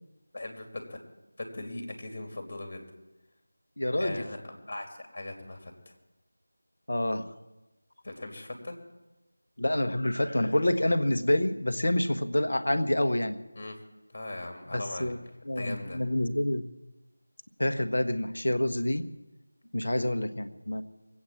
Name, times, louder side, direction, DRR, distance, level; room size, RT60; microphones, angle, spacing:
voice 1, 0.3-1.0 1.4-2.9 4.0-4.4 4.7-4.9 5.1-5.7 8.0-8.8 13.5-13.8 14.1-15.1 15.6-16.0, left 2 dB, 40° left, 4 dB, 3.0 m, -39 dB
voice 2, 3.8-4.2 6.9-7.3 9.6-13.4 14.7-15.2 15.4-16.6 17.6-19.0 19.7-20.8, left 1 dB, 65° left, 9 dB, 1.2 m, -27 dB
22.0 x 8.7 x 7.5 m, 1.1 s
figure-of-eight pair, 170°, 0 cm